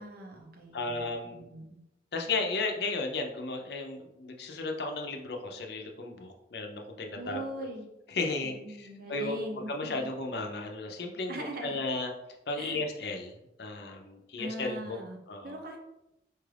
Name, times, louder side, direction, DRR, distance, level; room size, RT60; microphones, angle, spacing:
voice 1, 0.0-1.8 7.2-7.9 8.4-10.1 11.3-11.8 12.6-12.8 14.4-15.2 15.4-15.8, right 1 dB, 50° right, 2 dB, 0.7 m, -40 dB
voice 2, 0.7-1.4 2.1-7.4 8.1-9.4 9.7-12.1 12.5-15.0 15.3-15.6, left 3 dB, 60° left, 2 dB, 0.5 m, -34 dB
4.4 x 2.4 x 3.3 m, 0.88 s
head